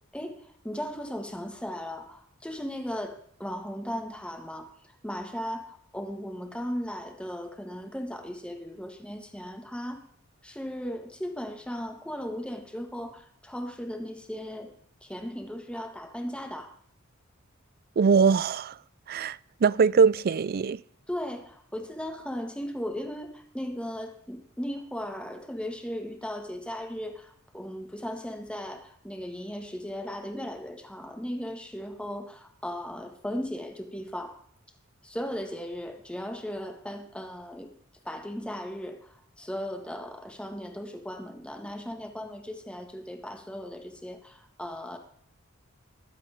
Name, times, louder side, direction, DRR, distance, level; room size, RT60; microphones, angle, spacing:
voice 1, 0.1-4.7 5.0-10.0 10.4-14.7 15.0-16.7 21.1-34.4 35.0-37.7 38.0-45.0, equal, 5° left, 1.7 m, -37 dB
voice 2, 18.0-18.8 19.1-20.8, right 5 dB, 50° right, 0.4 m, -22 dB
21.0 x 8.5 x 3.6 m
head